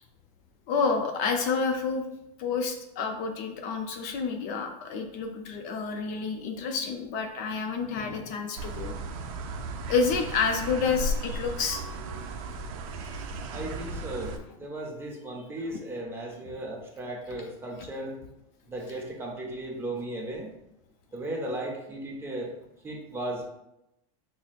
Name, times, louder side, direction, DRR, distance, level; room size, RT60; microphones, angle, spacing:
voice 1, 0.7-2.1 2.4-8.9 9.9-11.8, left 5 dB, 45° left, 4 dB, 0.5 m, -29 dB
sound 1, 8.6-14.4, right 1 dB, 65° right, 0.5 m, -35 dB
voice 2, 13.5-14.3 14.6-18.2 18.7-20.5 21.1-22.5 22.8-23.5, right 1 dB, 10° right, -1 dB, 0.6 m, -36 dB
5.7 x 2.0 x 2.4 m, 0.86 s
supercardioid pair, 140°, 19 cm